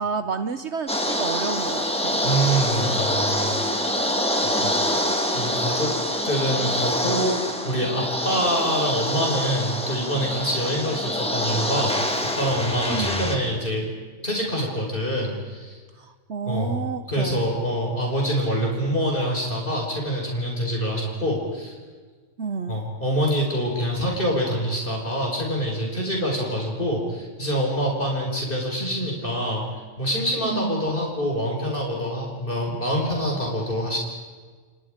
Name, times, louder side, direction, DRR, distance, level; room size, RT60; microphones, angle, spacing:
voice 1, 0.0-2.2 5.1-5.2 12.9-13.1 16.0-17.4 22.4-22.8 30.4-30.9, right 5 dB, 65° right, 9 dB, 1.3 m, -30 dB
sound 1, 0.9-13.4, equal, 5° left, 2.4 m, -25 dB
voice 2, 2.2-3.8 4.6-4.7 5.0-5.9 6.2-13.9 14.2-15.8 16.5-16.8 17.1-21.8 22.7-29.6 30.0-34.0, equal, 45° left, -1 dB, 5.5 m, -25 dB
30.0 x 29.0 x 5.1 m, 1.4 s
omnidirectional pair, 1.3 m